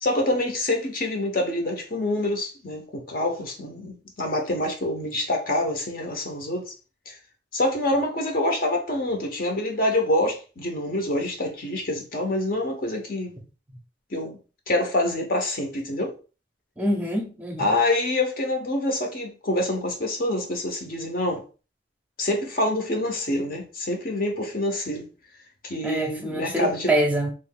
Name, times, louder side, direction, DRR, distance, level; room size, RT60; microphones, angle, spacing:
voice 1, 0.0-6.6 7.1-7.2 7.5-13.4 14.1-14.4 14.7-16.1 17.6-21.4 22.2-25.1 25.6-26.9, left 1 dB, 50° left, 0.8 m, -26 dB
voice 2, 16.8-17.7 25.8-27.3, right 1 dB, 10° right, 0.6 m, -25 dB
3.1 x 2.6 x 3.6 m
head